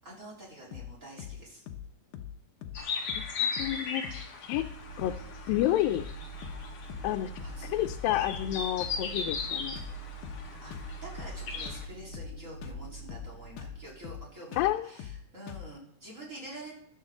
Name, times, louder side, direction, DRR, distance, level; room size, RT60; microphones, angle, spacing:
voice 1, 0.0-1.6 7.4-7.7 10.6-14.6 14.8-16.7, right 1 dB, 20° right, -5 dB, 4.1 m, -47 dB
sound 1, 0.7-0.9 1.2-1.4 1.7-1.9 2.1-2.4 2.6-2.8 3.1-3.3 3.6-3.8 4.0-4.3 4.5-4.7 5.0-5.2 5.5-5.7 6.0-6.2 6.4-6.6 6.9-7.1 7.4-7.6 7.9-8.6 8.8-9.0 9.3-9.5 9.8-10.0 10.2-10.5 10.7-10.9 11.2-11.4 11.7-11.9 12.1-12.4 12.6-12.8 13.1-13.3 13.6-13.8 14.0-14.3 14.5-14.7 15.0-15.2 15.5-15.7, left 10 dB, 70° left, 2.3 m, -42 dB
sound 2, 2.7-11.9, left 5 dB, 50° left, 2.4 m, -38 dB
voice 2, 3.2-4.1 4.4-4.7 5.0-5.2 5.5-6.0 7.0-7.3 7.7-9.8 14.6-14.9, left 13 dB, 90° left, 6 dB, 2.4 m, -29 dB
sound 3, 4.5-14.2, right 5 dB, 75° right, 3.8 m, -45 dB
15.0 x 12.0 x 3.8 m, 0.70 s
omnidirectional pair, 4.0 m